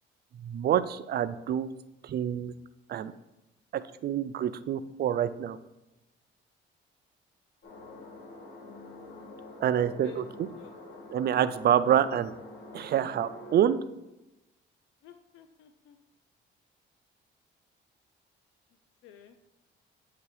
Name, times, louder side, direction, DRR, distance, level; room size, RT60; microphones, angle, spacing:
voice 1, 0.4-1.7 2.0-2.5 2.9-3.1 3.7-5.6 9.6-10.5 11.1-12.3 12.7-13.8, right 10 dB, 55° right, 13 dB, 0.4 m, -27 dB
sound 1, 7.6-13.6, left 2 dB, 65° left, 1.7 m, -46 dB
voice 2, 10.0-10.7 11.9-12.1 15.0-16.0 19.0-19.4, left 8 dB, 90° left, 7 dB, 0.4 m, -52 dB
7.9 x 2.9 x 4.8 m, 0.94 s
cardioid pair, 90°, 20 cm